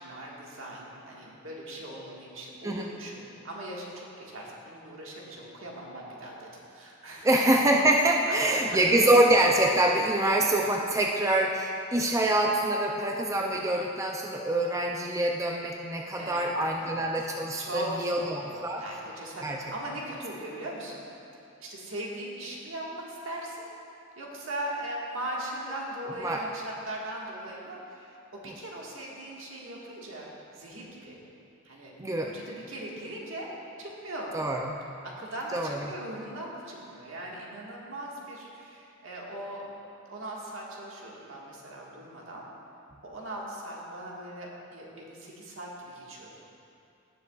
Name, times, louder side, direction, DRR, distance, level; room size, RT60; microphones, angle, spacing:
voice 1, 0.0-7.3 8.5-8.8 16.2-16.5 16.8-17.3 17.6-21.0 21.6-23.6 24.2-31.2 31.6-33.5 33.8-34.3 35.0-39.8 40.0-42.4 43.0-46.4, right 1 dB, 70° right, -3 dB, 1.7 m, -39 dB
voice 2, 7.2-18.9 19.4-19.6 26.2-26.4 32.0-32.3 34.3-34.7 35.5-35.8, right 1 dB, 15° right, 1 dB, 0.4 m, -25 dB
17.0 x 7.0 x 2.4 m, 2.7 s
head